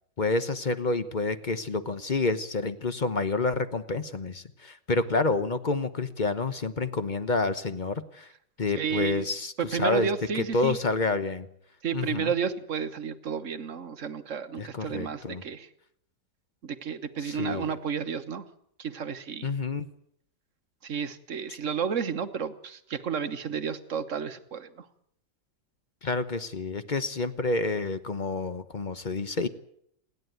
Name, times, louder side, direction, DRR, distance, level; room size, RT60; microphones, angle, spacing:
voice 1, 0.2-8.3 8.6-10.1 10.3-11.5 11.9-12.3 14.6-15.4 17.2-17.8 19.4-19.9 26.0-29.5, left 3 dB, 35° left, 11 dB, 0.7 m, -29 dB
voice 2, 8.8-9.3 9.6-10.8 11.8-15.7 16.6-18.4 18.8-19.5 20.8-24.8, right 7 dB, 45° right, 10 dB, 1.4 m, -32 dB
28.5 x 11.0 x 9.4 m, 0.71 s
omnidirectional pair, 2.1 m